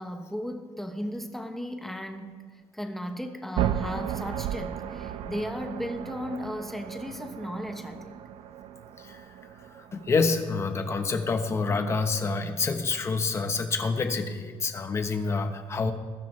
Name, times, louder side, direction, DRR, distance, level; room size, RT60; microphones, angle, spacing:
voice 1, 0.0-8.2, equal, 5° left, 5 dB, 1.0 m, -36 dB
sound 1, 3.6-11.6, right 10 dB, 85° right, 0.7 m, -35 dB
voice 2, 9.9-15.9, left 4 dB, 30° left, 6 dB, 1.1 m, -27 dB
21.0 x 11.5 x 3.3 m, 1.5 s
cardioid pair, 160°, 10 cm